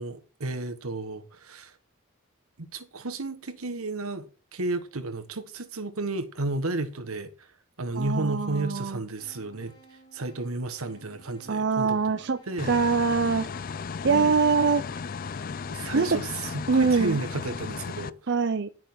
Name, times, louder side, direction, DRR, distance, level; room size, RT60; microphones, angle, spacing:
voice 1, 0.0-1.8 2.6-7.5 7.8-12.7 14.1-14.3 15.7-18.3, right 2 dB, 90° right, 1.3 m, -33 dB
voice 2, 7.9-9.0 11.5-12.4 12.7-13.5 14.0-14.9 15.9-16.1 16.7-17.2 18.3-18.7, right 4 dB, 55° right, 0.6 m, -23 dB
sound 1, 9.2-14.3, right 2 dB, 20° left, 4.5 m, -56 dB
sound 2, 12.6-18.1, left 5 dB, 40° left, 0.4 m, -35 dB
10.5 x 6.2 x 6.0 m
head